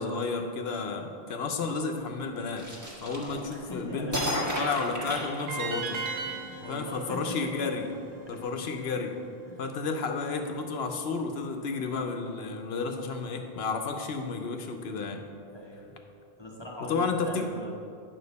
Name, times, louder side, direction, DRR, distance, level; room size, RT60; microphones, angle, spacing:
voice 1, 0.0-2.7 3.0-6.0 6.6-7.9 8.3-9.2 9.6-15.2 16.9-17.5, left 4 dB, 80° left, 4 dB, 1.0 m, -32 dB
sound 1, 2.6-3.7 4.1-6.0, equal, 15° right, 1.4 m, -32 dB
voice 2, 3.0-4.5 6.2-7.7 8.3-8.7 9.5-9.6 15.5-16.0 16.4-17.7, left 1 dB, 25° left, -2 dB, 1.0 m, -41 dB
sound 2, 5.5-8.6, right 5 dB, 75° right, 1.0 m, -38 dB
8.6 x 6.0 x 4.0 m, 2.3 s
omnidirectional pair, 1.0 m